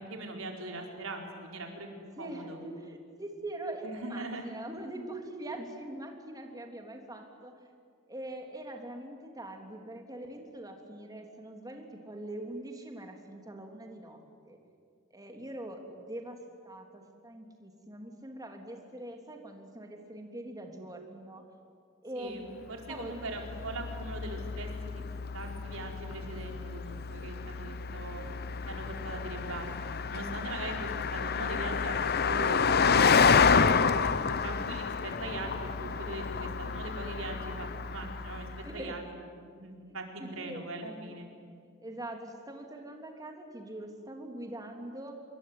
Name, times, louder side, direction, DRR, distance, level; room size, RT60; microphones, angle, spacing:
voice 1, 0.0-1.9 2.2-2.6 3.8-4.5 22.1-25.0 25.3-28.2 28.7-32.9 33.5-38.5 38.7-39.0 39.5-41.3, right 2 dB, 85° right, 2 dB, 4.7 m, -41 dB
voice 2, 2.1-7.5 8.1-14.2 14.5-14.6 15.1-16.4 16.6-21.4 22.0-23.2 27.9-28.0 38.6-39.0 39.9-40.6 41.2-41.3 41.8-45.1, right 1 dB, 20° right, 3 dB, 3.3 m, -43 dB
Car passing by, 23.0-38.7, left 5 dB, 50° left, 0.8 m, -29 dB
26.5 x 22.5 x 9.7 m, 2.2 s
head